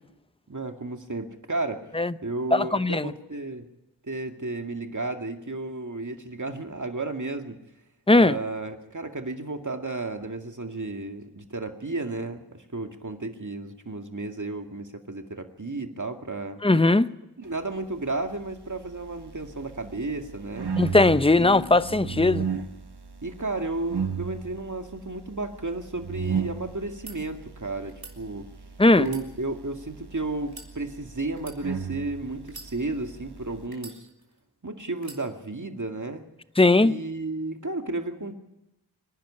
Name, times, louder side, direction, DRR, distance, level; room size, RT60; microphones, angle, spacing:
voice 1, 0.5-1.9 2.2-3.7 4.0-7.6 8.1-16.6 17.4-20.7 21.4-22.2 23.2-28.5 28.9-34.1 34.6-36.2 36.8-38.3, right 2 dB, 50° right, 2.2 m, -33 dB
voice 2, 2.5-3.0 8.1-8.4 16.6-17.1 20.7-22.4 28.8-29.1 36.6-37.0, left 2 dB, 15° left, 0.7 m, -19 dB
sound 1, 18.3-33.7, right 6 dB, 90° right, 1.3 m, -36 dB
sound 2, 27.0-27.2 27.9-28.2 29.0-29.9 30.5-30.7 31.4-31.6 32.4-33.1 33.7-34.4 35.0-35.2, right 3 dB, 65° right, 3.6 m, -45 dB
25.5 x 11.0 x 9.8 m
wide cardioid pair, 40°, 38 cm